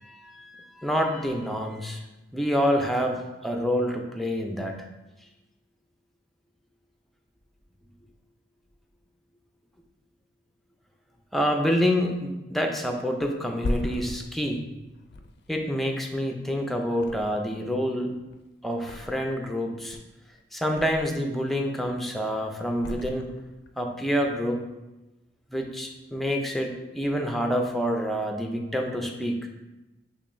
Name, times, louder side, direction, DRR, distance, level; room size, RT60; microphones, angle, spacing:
voice 1, 0.0-2.0 2.3-4.8 11.3-14.6 15.5-18.1 18.6-20.0 20.5-23.3 23.8-24.6 25.5-29.5, equal, ahead, 2 dB, 0.4 m, -27 dB
Thump thud, 13.2-16.5 16.9-17.7 18.0-19.5 19.8-21.3 21.7-22.2 22.8-23.8 24.1-24.3, left 1 dB, 60° left, 0.4 m, -37 dB
6.6 x 3.0 x 2.6 m, 1.0 s
head